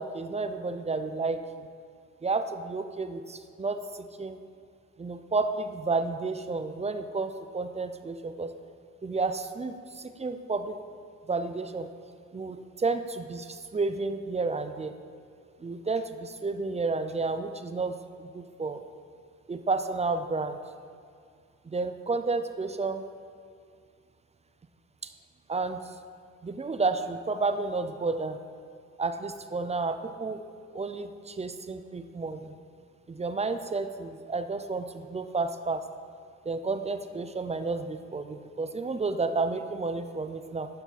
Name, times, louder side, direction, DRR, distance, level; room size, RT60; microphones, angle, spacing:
voice 1, 0.0-1.7 2.2-4.4 5.0-8.5 9.0-10.8 11.3-11.9 12.3-14.9 15.6-17.9 18.2-18.8 19.5-20.6 21.7-23.0 25.0-25.1 25.5-25.8 26.4-28.4 29.0-30.4 30.7-32.5 33.1-35.8 36.5-40.7, right 3 dB, 20° right, 9 dB, 0.5 m, -31 dB
11.5 x 5.8 x 4.2 m, 2.3 s
cardioid pair, 90°, 30 cm